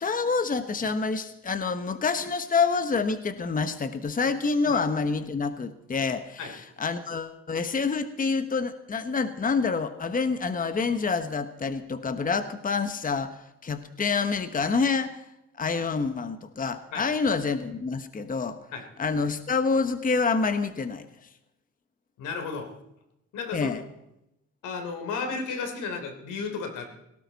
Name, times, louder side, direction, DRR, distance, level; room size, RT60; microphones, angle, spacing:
voice 1, 0.0-13.4 13.6-15.2 15.6-18.6 19.0-21.1 23.5-23.8, left 4 dB, 30° left, 10 dB, 1.1 m, -27 dB
voice 2, 22.2-22.7 23.3-23.7 24.6-26.9, left 4 dB, 90° left, 5 dB, 3.2 m, -33 dB
18.0 x 17.5 x 4.1 m, 0.85 s
cardioid pair, 90°, 30 cm